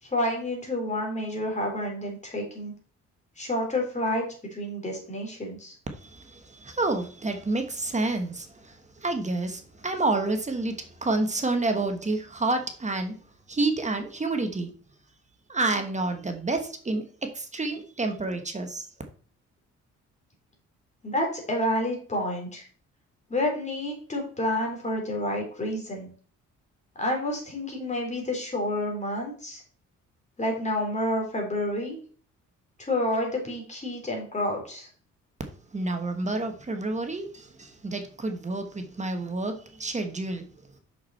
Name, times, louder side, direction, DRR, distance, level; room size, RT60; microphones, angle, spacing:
voice 1, 0.0-2.7 3.4-4.2 4.5-5.8 21.0-22.7 23.3-26.1 26.9-29.6 30.4-32.0 32.8-34.9, left 1 dB, 25° left, 3.4 m, -29 dB
voice 2, 6.0-13.2 13.5-14.7 15.5-17.0 17.3-18.9 35.7-40.4, right 2 dB, 25° right, 1.2 m, -29 dB
6.2 x 5.9 x 4.2 m
cardioid pair, 90°, 30 cm